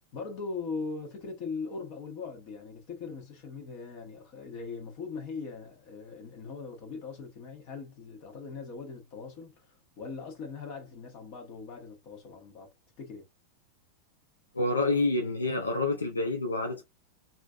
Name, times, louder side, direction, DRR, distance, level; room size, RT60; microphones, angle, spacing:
voice 1, 0.1-13.3, left 4 dB, 45° left, 1.1 m, -40 dB
voice 2, 14.5-16.8, left 2 dB, 75° left, 0.5 m, -28 dB
3.1 x 2.6 x 2.4 m
figure-of-eight pair, 90°, 0 cm